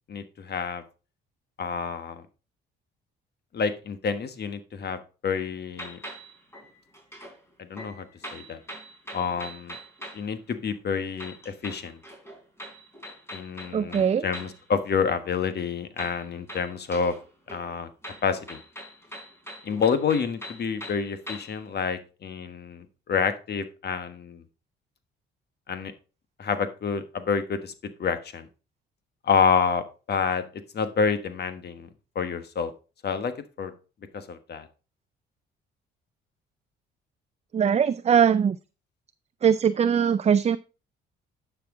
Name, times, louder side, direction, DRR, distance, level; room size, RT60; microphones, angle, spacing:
voice 1, 0.1-0.8 1.6-2.2 3.5-6.0 7.6-8.0 8.3-8.6 9.1-9.8 10.1-12.0 13.3-17.1 17.5-17.9 18.2-18.6 19.6-24.4 25.7-25.9 26.4-28.5 29.2-31.9 32.1-32.7 33.0-33.3 33.6-33.7 34.1-34.7, left 6 dB, 50° left, 10 dB, 1.4 m, -28 dB
sound 1, 5.8-7.4 7.7-10.3 11.2-14.6 16.0-17.2 17.5-21.6, equal, 10° left, 3.7 m, -42 dB
voice 2, 13.7-14.3 37.5-38.6 39.4-40.6, right 7 dB, 30° right, 14 dB, 0.4 m, -21 dB
10.5 x 6.0 x 3.7 m, 0.33 s
supercardioid pair, 75°, 21 cm